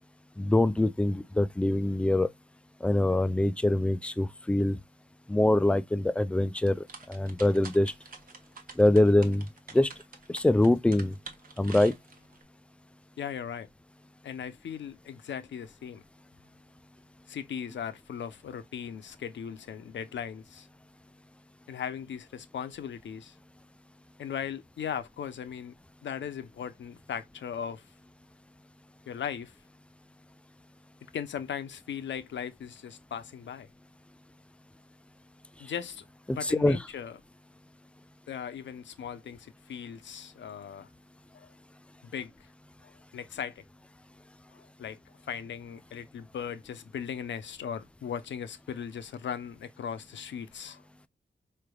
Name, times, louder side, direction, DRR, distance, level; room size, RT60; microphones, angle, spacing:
voice 1, 0.4-2.3 2.8-4.8 5.3-7.9 8.8-9.5 9.7-9.9 10.3-11.2 11.6-11.9 36.3-36.8, left 1 dB, 5° left, 0.3 m, -24 dB
sound 1, 6.6-12.4, right 4 dB, 50° right, 1.0 m, -47 dB
voice 2, 13.2-13.7 14.2-16.0 17.3-20.7 21.7-23.3 24.2-25.7 26.0-27.8 29.1-29.5 31.1-33.7 35.6-36.0 36.3-37.2 38.3-40.9 41.3-41.5 42.0-42.5 42.8-43.6 44.8-45.0 45.3-50.8, left 8 dB, 90° left, 0.6 m, -38 dB
4.7 x 3.3 x 2.2 m
wide cardioid pair, 135°, 18 cm